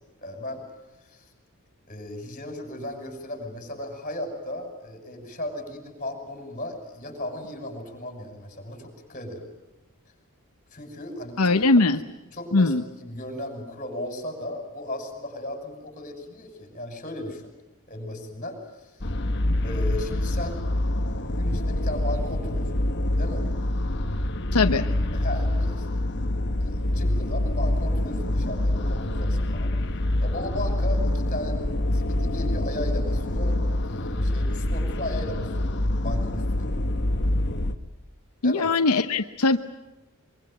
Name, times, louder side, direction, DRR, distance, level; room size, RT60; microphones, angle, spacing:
voice 1, 0.2-0.6 1.0-1.3 1.9-9.5 10.7-11.6 12.3-17.5 17.9-19.1 19.6-20.6 21.3-22.8 23.2-23.5 25.1-26.3 26.6-29.7 30.2-35.7 36.0-36.7 38.4-38.7, left 1 dB, 35° left, 5 dB, 6.3 m, -36 dB
voice 2, 11.4-12.0 12.5-12.8 24.5-24.9 38.4-39.6, left 3 dB, 85° left, 7 dB, 1.0 m, -20 dB
sound 1, 19.0-37.7, left 1 dB, 50° left, 1.4 m, -26 dB
24.0 x 24.0 x 9.0 m, 1.0 s
head